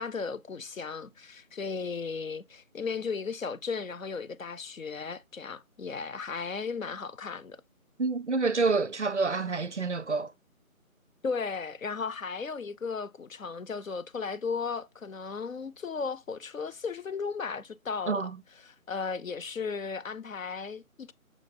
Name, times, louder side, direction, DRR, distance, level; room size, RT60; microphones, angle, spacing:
voice 1, 0.0-7.6 11.2-18.3 18.6-21.1, left 5 dB, 65° left, 0.6 m, -35 dB
voice 2, 8.0-10.3 18.1-18.4, right 4 dB, 55° right, 0.5 m, -28 dB
6.4 x 3.0 x 2.5 m
figure-of-eight pair, 165°, 43 cm